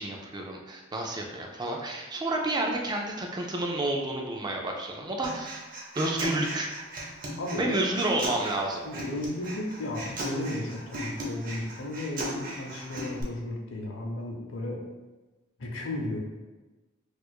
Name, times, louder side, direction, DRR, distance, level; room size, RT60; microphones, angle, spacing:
voice 1, 0.0-5.6 6.0-6.7 7.6-8.8, right 2 dB, 20° right, 1 dB, 0.3 m, -30 dB
Human voice, 5.2-13.2, right 1 dB, 45° right, 0.7 m, -37 dB
voice 2, 7.4-7.9 8.8-14.8 15.6-16.2, left 1 dB, 75° left, 0 dB, 0.7 m, -34 dB
4.4 x 2.4 x 2.3 m, 1.2 s
head